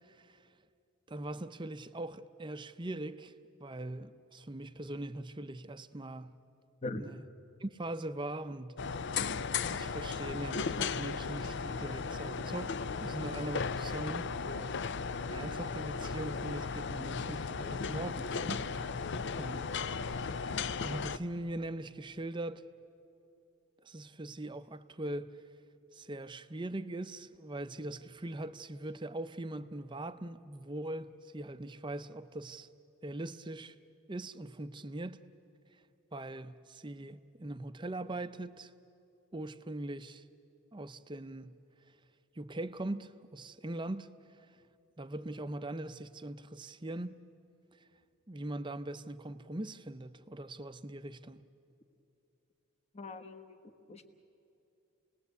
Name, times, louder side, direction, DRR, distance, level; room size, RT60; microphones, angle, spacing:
voice 1, 0.1-0.4 1.1-3.3 3.6-6.4 7.0-7.2 7.6-8.8 9.7-14.8 15.3-19.1 19.4-19.7 20.2-22.6 23.8-25.4 25.9-32.7 33.0-33.7 34.1-35.2 36.1-38.7 39.3-40.2 40.7-41.6 42.3-44.1 45.0-47.2 48.3-51.5, right 1 dB, 20° right, 0.6 m, -41 dB
sound 1, 8.8-21.2, left 5 dB, 55° left, 0.5 m, -36 dB
voice 2, 52.9-53.6 53.9-54.1, left 2 dB, 30° left, 1.2 m, -41 dB
29.5 x 19.5 x 8.3 m
head